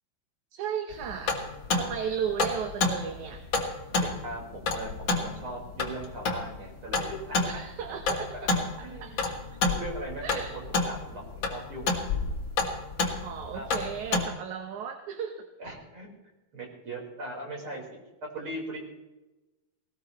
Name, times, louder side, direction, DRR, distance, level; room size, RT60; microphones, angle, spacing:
voice 1, 0.5-1.4 1.7-3.4 7.4-8.3 8.8-9.4 10.2-10.5 13.2-15.5, right 7 dB, 70° right, 5 dB, 2.2 m, -35 dB
sound 1, 0.9-14.3, left 3 dB, 40° left, 2.1 m, -30 dB
voice 2, 4.0-7.6 8.1-9.2 9.6-12.0 13.5-13.7 15.6-16.1 16.5-18.8, right 1 dB, 35° right, -1 dB, 5.1 m, -39 dB
19.5 x 18.5 x 3.1 m, 1.0 s
omnidirectional pair, 4.1 m